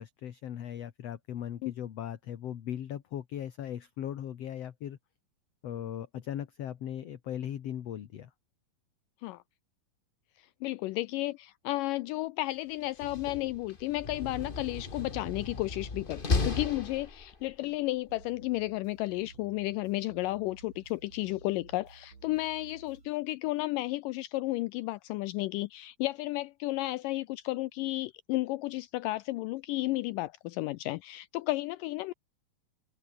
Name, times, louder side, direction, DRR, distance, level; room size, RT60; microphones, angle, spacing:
voice 1, 0.0-5.0 5.6-8.3, left 10 dB, 55° left, 2.1 m, -38 dB
voice 2, 10.4-32.1, left 19 dB, 80° left, 2.0 m, -33 dB
Slam, 12.8-17.6, left 3 dB, 35° left, 0.8 m, -35 dB
sound 1, 18.1-23.1, right 5 dB, 45° right, 4.8 m, -55 dB
open air
omnidirectional pair, 4.3 m